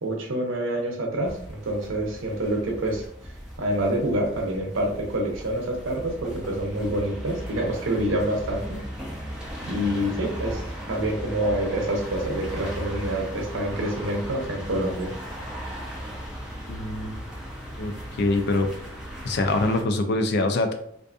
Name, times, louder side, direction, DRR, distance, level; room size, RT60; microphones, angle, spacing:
voice 1, 0.0-3.0 3.6-8.8 9.6-10.6 10.9-15.1, right 1 dB, 75° right, 1 dB, 0.7 m, -27 dB
sound 1, 1.2-19.8, equal, 5° right, 0.5 m, -37 dB
voice 2, 16.7-17.1 17.8-17.9 18.2-18.7 19.2-20.7, left 2 dB, 55° left, 6 dB, 0.3 m, -24 dB
2.5 x 2.5 x 2.3 m, 0.73 s
head